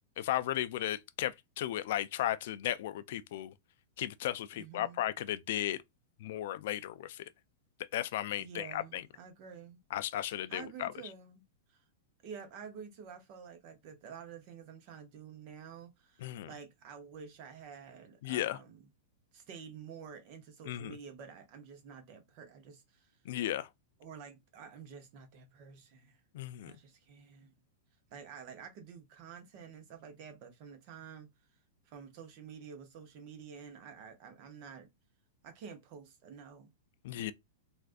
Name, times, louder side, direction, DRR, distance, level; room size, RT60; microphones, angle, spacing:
voice 1, 0.2-3.5 4.0-5.8 6.2-7.3 7.9-9.0 9.9-10.9 16.2-16.5 18.2-18.6 20.7-21.0 23.3-23.7 26.3-26.7 37.0-37.3, left 13 dB, 55° left, 0.3 m, -35 dB
voice 2, 4.5-5.0 8.4-9.8 10.3-11.4 11.7-11.9 12.2-18.9 19.3-23.1 24.0-26.2 26.6-27.5 28.1-31.3 31.8-34.9 35.4-36.7 37.1-37.3, right 7 dB, 35° right, 0.7 m, -49 dB
3.4 x 2.4 x 2.5 m
supercardioid pair, 165°, 0 cm